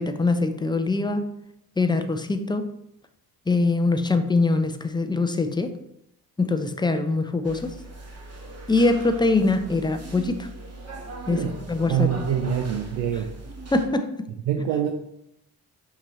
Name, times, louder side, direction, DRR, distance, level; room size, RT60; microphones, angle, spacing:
voice 1, 0.0-1.3 1.8-2.8 3.5-5.7 6.4-7.7 8.7-10.5 11.3-12.1 13.7-14.1, left 3 dB, 10° left, 8 dB, 0.5 m, -23 dB
sound 1, 7.4-13.9, right 2 dB, 30° right, 1.1 m, -39 dB
voice 2, 11.9-13.3 14.5-14.9, right 9 dB, 75° right, 4 dB, 0.5 m, -25 dB
6.0 x 2.7 x 3.0 m, 0.79 s
hypercardioid pair, 40°, 46 cm